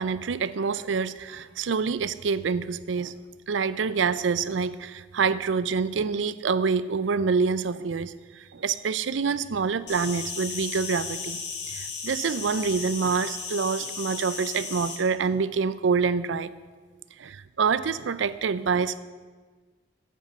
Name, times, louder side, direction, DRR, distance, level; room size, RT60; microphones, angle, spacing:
voice 1, 0.0-3.1 3.5-11.4 11.7-16.5 17.2-19.0, right 5 dB, 85° right, 16 dB, 0.5 m, -26 dB
Insect, 9.9-15.0, left 5 dB, 70° left, 1.7 m, -35 dB
9.2 x 7.5 x 7.4 m, 1.4 s
head